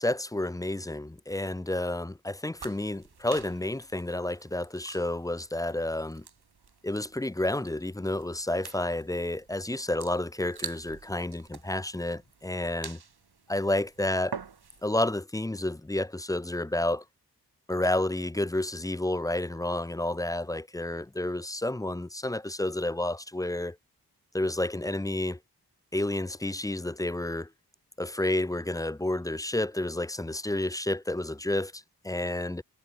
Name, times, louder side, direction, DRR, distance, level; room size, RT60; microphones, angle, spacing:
voice 1, 0.0-6.2 6.8-13.0 13.5-14.4 14.8-17.0 17.7-23.8 24.3-25.4 25.9-27.5 28.0-32.6, left 1 dB, 10° left, 0.5 m, -30 dB
sound 1, 2.6-15.0, right 6 dB, 80° right, 5.2 m, -47 dB
wide cardioid pair, 85°, 38 cm